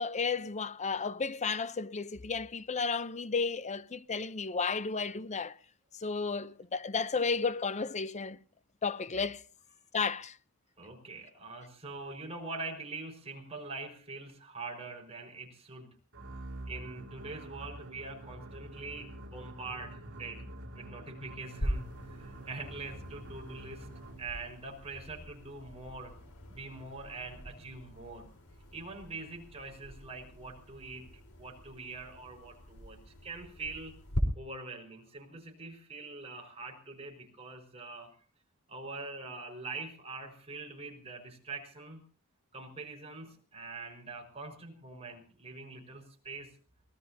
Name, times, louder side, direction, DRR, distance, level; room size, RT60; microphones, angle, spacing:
voice 1, 0.0-5.5 6.0-8.4 8.8-9.4 9.9-10.3, left 4 dB, 35° left, 0.7 m, -33 dB
voice 2, 10.8-15.9 16.7-20.4 20.8-23.9 24.2-26.2 26.5-28.3 28.7-31.1 31.4-33.9 34.3-38.1 38.7-42.0 42.5-46.5, right 3 dB, 30° right, 5.3 m, -44 dB
sound 1, 16.1-24.4, right 1 dB, 60° right, 3.1 m, -46 dB
sound 2, 21.6-34.2, equal, 85° left, 4.2 m, -43 dB
24.0 x 19.0 x 2.8 m
head